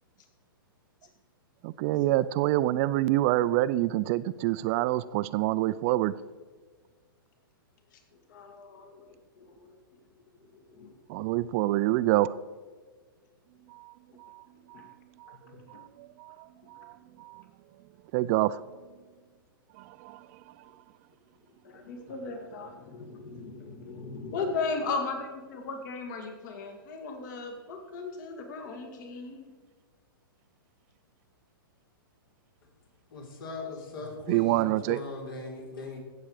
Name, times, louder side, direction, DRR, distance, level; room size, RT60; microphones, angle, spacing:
voice 1, 1.6-6.1 11.1-12.3 13.7-17.4 18.1-18.6 19.7-20.7 34.3-35.0, right 16 dB, 40° right, 16 dB, 0.4 m, -28 dB
voice 2, 8.3-9.8 10.2-11.3 14.7-14.9 15.4-15.9 21.6-29.5, left 4 dB, 55° left, 4 dB, 2.1 m, -37 dB
voice 3, 33.1-36.0, left 2 dB, 70° left, 0 dB, 4.1 m, -39 dB
16.0 x 7.3 x 4.9 m, 1.5 s
hypercardioid pair, 135°, 12 cm